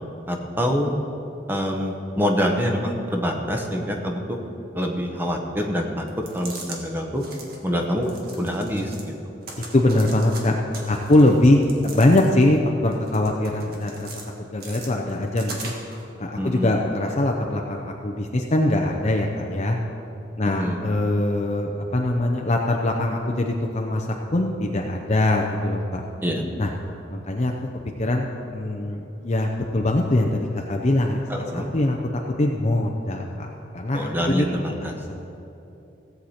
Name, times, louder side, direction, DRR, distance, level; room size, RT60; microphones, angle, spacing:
voice 1, 0.3-1.0 1.5-4.4 4.7-6.0 6.3-7.2 7.6-8.1 8.4-9.1 16.4-16.7 20.6-20.8 26.2-26.4 31.3-31.7 33.9-34.9, equal, 10° right, 2 dB, 1.0 m, -25 dB
sound 1, 6.1-6.8 7.1-7.6 8.0-9.1 9.4-10.4 10.7-12.5 12.9-14.2 14.6-16.0, right 3 dB, 55° right, 1.6 m, -40 dB
voice 2, 9.7-10.5 10.9-14.1 14.5-15.7 16.2-19.8 20.4-26.0 26.6-26.7 27.1-27.5 28.0-32.0 32.4-33.5 33.7-35.2, left 1 dB, 35° left, 1 dB, 0.6 m, -22 dB
16.5 x 8.0 x 4.3 m, 2.8 s
head